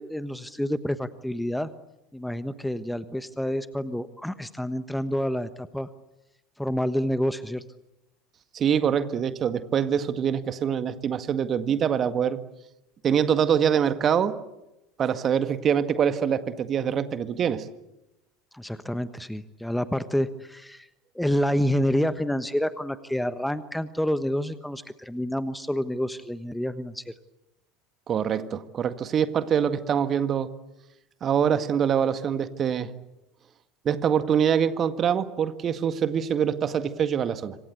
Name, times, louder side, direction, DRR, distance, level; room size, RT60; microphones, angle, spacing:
voice 1, 0.0-1.7 2.1-5.9 6.6-7.6 18.5-20.9 21.1-27.0, equal, 5° left, 13 dB, 1.2 m, -28 dB
voice 2, 8.5-12.4 13.0-14.3 15.0-17.6 28.1-30.5 31.2-32.9 33.8-37.6, right 8 dB, 35° right, 11 dB, 1.8 m, -24 dB
27.0 x 25.0 x 8.2 m, 0.93 s
figure-of-eight pair, 70°, 0 cm